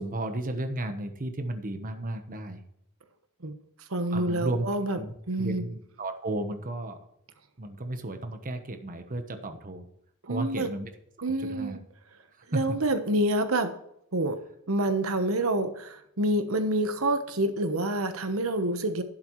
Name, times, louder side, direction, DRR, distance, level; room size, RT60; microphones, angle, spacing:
voice 1, 0.0-2.6 4.1-4.7 5.0-7.0 7.6-9.9 10.2-10.9 11.4-11.8 12.5-12.8, right 1 dB, 40° right, 7 dB, 1.1 m, -33 dB
voice 2, 3.9-5.0 5.3-5.6 10.3-10.7 11.2-11.8 12.5-13.7 14.1-14.4 14.7-19.0, right 1 dB, 75° right, 9 dB, 1.1 m, -27 dB
11.5 x 11.5 x 3.1 m, 0.75 s
head